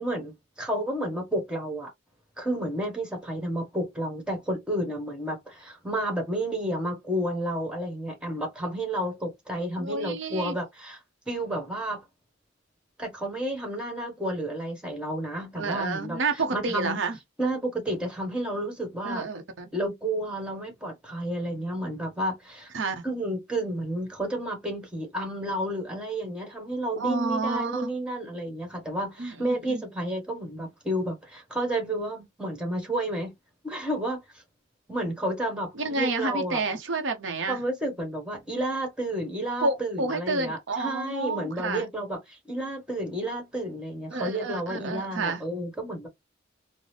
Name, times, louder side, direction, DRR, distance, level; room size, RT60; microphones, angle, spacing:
voice 1, 0.0-1.9 2.4-11.0 11.3-12.0 13.0-16.2 16.5-17.0 17.4-19.2 19.7-22.7 23.0-33.3 33.6-34.4 34.9-36.6 37.5-46.1, right 1 dB, 5° right, 1.4 m, -31 dB
voice 2, 9.8-10.5 15.6-17.2 19.0-19.7 22.7-23.0 26.9-27.9 29.2-29.8 35.8-37.6 39.6-41.9 44.1-45.4, right 3 dB, 70° right, 0.7 m, -30 dB
3.8 x 2.0 x 3.3 m
head